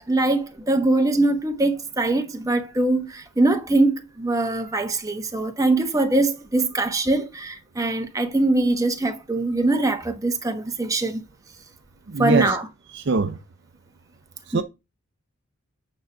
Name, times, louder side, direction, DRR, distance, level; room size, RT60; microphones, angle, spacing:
voice 1, 0.1-11.2 12.2-12.7 14.5-14.6, right 2 dB, 15° right, 1.1 m, -22 dB
voice 2, 12.1-12.6 12.9-13.4 14.5-14.6, right 4 dB, 50° right, 0.5 m, -22 dB
8.7 x 3.7 x 6.9 m
head